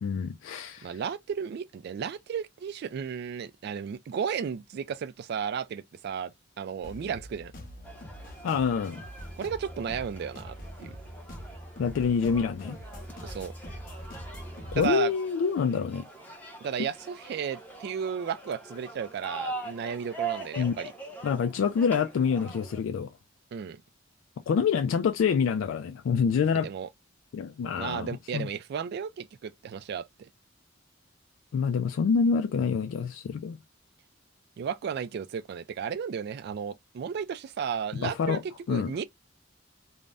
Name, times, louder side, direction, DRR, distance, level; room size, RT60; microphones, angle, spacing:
voice 1, 0.0-0.9 8.4-9.0 11.8-12.8 14.7-16.1 20.6-20.7 21.2-23.1 24.5-26.7 27.3-28.5 31.5-33.6 38.0-38.4 38.7-38.9, left 6 dB, 85° left, 0.3 m, -26 dB
voice 2, 0.8-6.3 6.6-7.5 9.4-10.9 13.2-13.5 14.7-15.1 16.6-20.9 23.5-23.8 26.6-26.9 27.8-30.3 34.6-39.0, right 7 dB, 55° right, 0.3 m, -34 dB
sound 1, 6.8-14.9, equal, 45° left, 0.8 m, -43 dB
sound 2, 7.8-22.8, right 3 dB, 10° left, 0.7 m, -42 dB
2.5 x 2.1 x 3.3 m
head